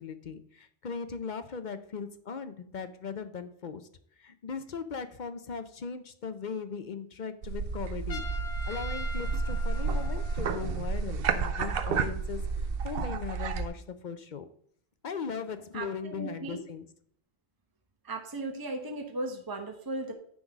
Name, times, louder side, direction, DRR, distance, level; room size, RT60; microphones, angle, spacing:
voice 1, 0.0-3.9 4.2-8.2 8.7-14.5 15.0-16.8, left 5 dB, 50° left, 11 dB, 0.7 m, -38 dB
sound 1, 7.4-13.7, right 4 dB, 60° right, 0.9 m, -31 dB
Trumpet, 8.1-10.8, left 2 dB, 70° left, 1.4 m, -42 dB
voice 2, 15.7-16.6 18.0-20.1, right 2 dB, 20° right, 3 dB, 1.0 m, -36 dB
9.9 x 3.9 x 6.0 m, 0.63 s
omnidirectional pair, 1.1 m